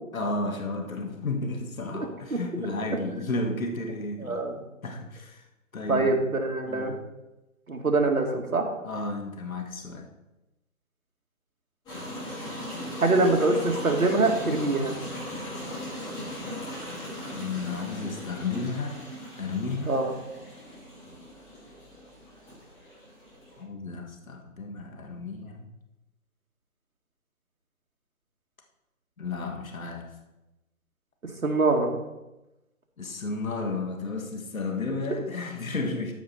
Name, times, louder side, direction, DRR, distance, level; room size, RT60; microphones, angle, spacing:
voice 1, 0.1-4.5 4.8-5.4 5.7-6.2 6.7-6.9 8.8-10.1 17.3-19.0 19.4-19.9 23.6-25.7 29.2-30.1 33.0-36.1, left 3 dB, 70° left, 3 dB, 1.7 m, -32 dB
voice 2, 1.9-2.4 4.2-4.6 5.9-6.9 7.7-8.7 13.0-14.9 19.9-20.1 31.2-31.9, right 3 dB, 75° right, 2 dB, 2.2 m, -24 dB
sound 1, 11.9-23.6, left 1 dB, 10° left, 2.6 m, -38 dB
13.5 x 5.4 x 4.4 m, 0.99 s
figure-of-eight pair, 155°, 42 cm